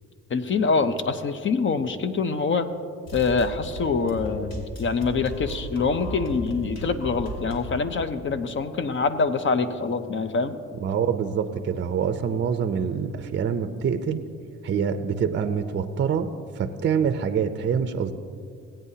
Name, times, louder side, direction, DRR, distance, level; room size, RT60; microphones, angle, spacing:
voice 1, 0.3-2.7 3.1-10.6, left 4 dB, 40° left, 10 dB, 0.7 m, -25 dB
sound 1, 3.1-7.9, equal, 55° left, 2.5 m, -36 dB
voice 2, 10.8-14.2 14.6-16.3 16.6-18.1, right 7 dB, 40° right, 8 dB, 0.5 m, -25 dB
17.0 x 8.8 x 2.8 m, 2.3 s
cardioid pair, 90°, 30 cm